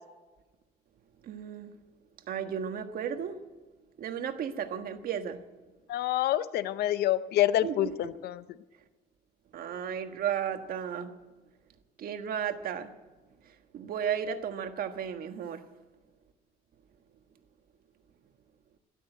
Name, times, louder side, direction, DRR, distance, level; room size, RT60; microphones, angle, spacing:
voice 1, 1.2-1.7 2.3-3.4 4.0-5.4 7.6-7.9 9.5-11.1 12.0-12.9 13.4-15.6, right 8 dB, 60° right, 7 dB, 1.5 m, -34 dB
voice 2, 5.9-8.4, left 13 dB, 70° left, 15 dB, 0.7 m, -27 dB
12.5 x 12.0 x 9.1 m, 1.2 s
cardioid pair, 110°, 17 cm